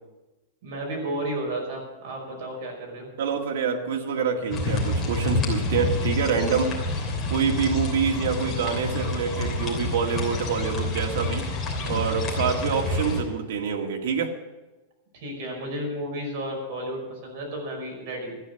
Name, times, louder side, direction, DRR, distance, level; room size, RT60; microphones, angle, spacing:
voice 1, 0.6-3.1 15.1-18.3, right 1 dB, 45° right, 0 dB, 5.3 m, -32 dB
voice 2, 3.2-6.8 7.3-11.5 11.9-14.3, right 6 dB, 75° right, 2 dB, 2.0 m, -26 dB
sound 1, 4.5-13.2, left 2 dB, 15° left, 3.1 m, -28 dB
13.0 x 10.0 x 7.1 m, 1.1 s
supercardioid pair, 175°, 0 cm